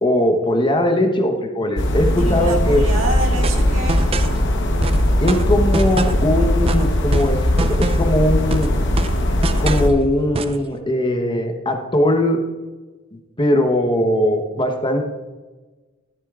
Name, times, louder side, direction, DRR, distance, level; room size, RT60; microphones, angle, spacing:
voice 1, 0.0-2.8 5.2-8.7 9.6-12.4 13.4-15.1, left 1 dB, 25° left, 4 dB, 1.0 m, -19 dB
sound 1, 1.8-9.9, left 1 dB, 60° left, 1.1 m, -19 dB
voice 2, 2.2-4.3, right 2 dB, 70° right, 1 dB, 1.9 m, -28 dB
sound 2, 3.4-4.4 4.8-6.3 6.7-8.2 8.5-9.9 10.3-10.6, right 3 dB, 30° right, 0.4 m, -26 dB
13.5 x 11.5 x 2.5 m, 1.2 s
head